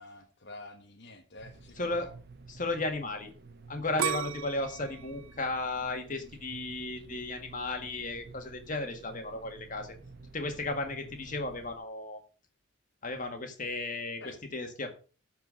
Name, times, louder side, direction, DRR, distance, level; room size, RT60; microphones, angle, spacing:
voice 1, 0.0-2.1 14.2-14.4, left 2 dB, 55° left, 2 dB, 1.3 m, -48 dB
sound 1, 1.4-11.8, right 3 dB, 55° right, 1.1 m, -51 dB
voice 2, 1.8-2.1 2.5-3.3 3.7-9.9 10.3-12.2 13.0-14.9, left 2 dB, 40° left, 5 dB, 1.9 m, -34 dB
sound 2, 4.0-6.9 7.4-7.9, right 10 dB, 85° right, 0.5 m, -36 dB
12.5 x 4.7 x 6.5 m, 0.37 s
head